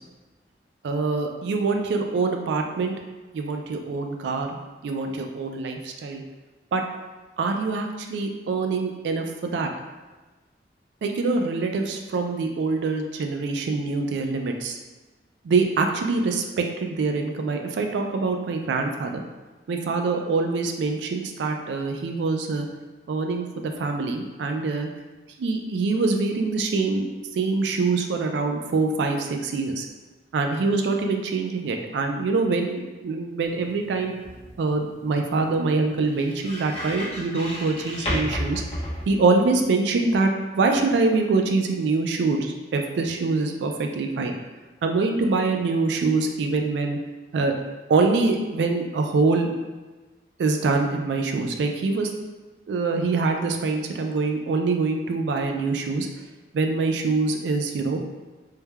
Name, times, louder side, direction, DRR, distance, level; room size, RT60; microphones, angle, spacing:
voice 1, 0.8-2.9 3.3-4.5 4.8-6.2 6.7-6.8 7.4-9.7 11.0-14.8 15.4-19.2 19.7-22.7 23.1-24.9 25.4-27.0 27.3-29.9 30.3-34.1 34.6-38.6 39.1-44.3 44.8-47.0 47.3-47.5 47.9-49.5 50.4-52.1 52.7-56.1 56.5-58.0, right 3 dB, 80° right, 4 dB, 0.3 m, -24 dB
sound 1, 33.4-39.7, equal, 30° left, 0.7 m, -34 dB
3.2 x 2.1 x 2.2 m, 1.2 s
head